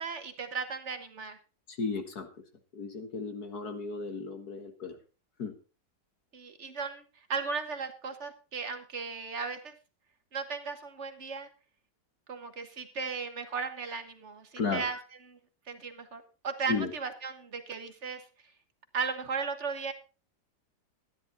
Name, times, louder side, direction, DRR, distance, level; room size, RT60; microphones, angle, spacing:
voice 1, 0.0-1.4 6.3-7.0 7.3-9.7 10.3-11.5 12.3-15.0 15.3-15.4 15.7-18.2 18.9-19.9, right 5 dB, 45° right, 8 dB, 1.5 m, -36 dB
voice 2, 1.7-2.3 2.7-5.0 5.4-5.5 14.6-15.0 16.7-16.9, left 4 dB, 65° left, 6 dB, 1.9 m, -34 dB
13.0 x 10.5 x 4.0 m, 0.33 s
omnidirectional pair, 1.9 m